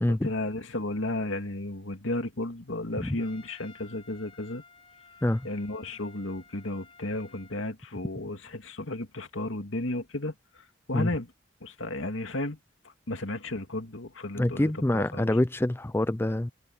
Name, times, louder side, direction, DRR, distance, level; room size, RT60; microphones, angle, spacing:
voice 1, 0.1-4.6 5.4-10.3 10.9-11.3 11.6-12.6 13.1-15.3, left 2 dB, 85° left, 2.4 m, -33 dB
Trumpet, 3.2-7.6, left 4 dB, 30° left, 5.1 m, -55 dB
voice 2, 14.4-16.5, left 1 dB, 10° left, 0.4 m, -26 dB
head